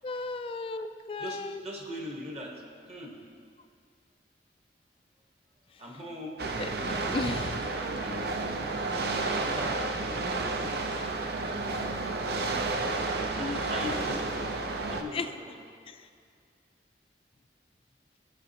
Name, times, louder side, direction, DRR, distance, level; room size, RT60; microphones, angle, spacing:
voice 1, 0.0-1.6 5.7-5.8 6.6-6.7 7.1-7.6 13.3-13.7 15.1-15.3 15.9-16.1, left 3 dB, 30° left, 9 dB, 0.3 m, -35 dB
voice 2, 1.2-2.6 2.9-3.2 5.8-7.0 7.6-11.2 11.4-12.0 12.5-12.7 13.4-14.5 14.9-15.6, left 1 dB, 35° right, -1 dB, 1.3 m, -41 dB
sound 1, 6.4-15.0, right 3 dB, 65° right, 0.6 m, -31 dB
15.5 x 6.2 x 2.9 m, 2.2 s
head